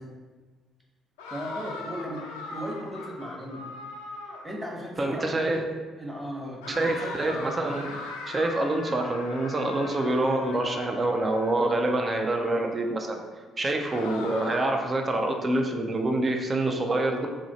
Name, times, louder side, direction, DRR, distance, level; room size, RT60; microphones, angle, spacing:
sound 1, 1.2-4.6 6.6-11.9 13.9-14.9, left 3 dB, 75° left, 0.4 m, -40 dB
voice 1, 1.3-2.2 2.5-3.7 4.4-5.6 6.0-7.5, equal, 5° right, -3 dB, 1.0 m, -36 dB
voice 2, 5.0-5.6 6.7-8.0 8.3-13.2 13.6-17.3, right 2 dB, 30° right, 3 dB, 0.5 m, -26 dB
3.1 x 2.5 x 4.1 m, 1.4 s
figure-of-eight pair, 50°, 0 cm